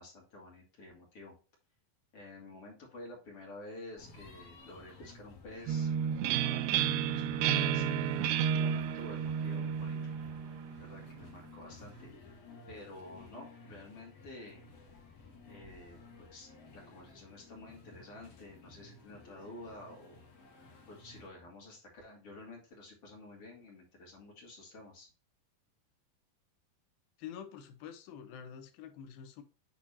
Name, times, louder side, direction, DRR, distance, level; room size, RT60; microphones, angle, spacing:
voice 1, 0.0-1.4 2.1-5.9 6.2-7.2 7.5-7.8 8.5-10.0 10.2-10.4 10.8-12.1 12.7-14.6 15.5-20.2 20.9-25.1, left 2 dB, 40° left, -2 dB, 3.1 m, -50 dB
sound 1, 4.0-21.3, left 4 dB, 60° left, 3.0 m, -55 dB
sound 2, 5.7-11.3, right 8 dB, 85° right, 1.8 m, -32 dB
voice 2, 27.2-29.4, left 8 dB, 80° left, 8 dB, 2.7 m, -47 dB
8.8 x 4.4 x 2.8 m, 0.34 s
omnidirectional pair, 4.3 m